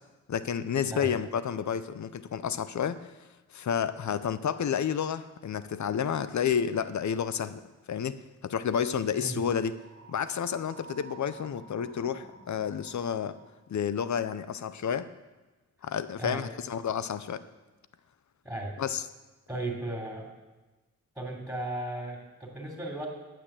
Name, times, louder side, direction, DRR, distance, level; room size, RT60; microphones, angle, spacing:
voice 1, 0.3-3.1 3.5-7.6 7.9-9.8 10.1-13.4 13.7-15.1 15.8-17.4 18.8-19.0, left 8 dB, 70° left, 13 dB, 0.6 m, -30 dB
sound 1, 9.7-13.6, right 3 dB, 30° left, 3.7 m, -51 dB
voice 2, 18.4-18.8 19.5-20.3 21.1-23.1, right 1 dB, 5° right, -1 dB, 3.2 m, -35 dB
10.0 x 9.0 x 7.4 m, 1.1 s
wide cardioid pair, 70°, 30 cm